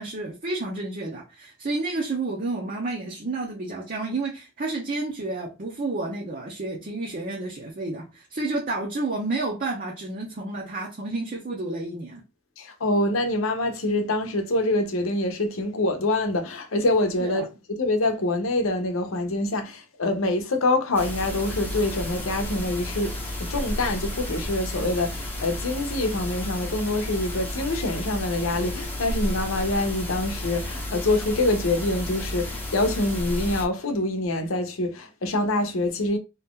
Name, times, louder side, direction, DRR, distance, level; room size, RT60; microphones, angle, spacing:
voice 1, 0.0-12.2 17.2-17.4, right 2 dB, 40° right, 0.6 m, -30 dB
voice 2, 12.6-36.2, left 2 dB, 85° left, 0.8 m, -25 dB
sound 1, 20.9-33.7, left 1 dB, 10° left, 0.7 m, -32 dB
2.8 x 2.4 x 3.6 m
head